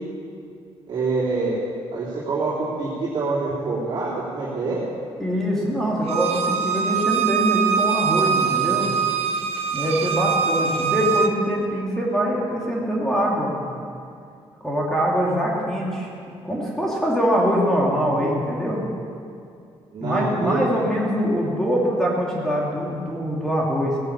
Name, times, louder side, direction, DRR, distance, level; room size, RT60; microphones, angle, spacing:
voice 1, 0.9-1.6 1.9-4.8 19.9-20.7, right 3 dB, 50° right, -9 dB, 3.4 m, -26 dB
voice 2, 5.2-8.9 9.7-13.5 14.6-16.1 16.4-18.8 20.0-24.0, equal, 5° left, -4 dB, 2.4 m, -23 dB
Bowed string instrument, 6.1-11.3, right 7 dB, 80° right, 1.1 m, -23 dB
17.0 x 10.5 x 7.3 m, 2.4 s
cardioid pair, 155°, 10 cm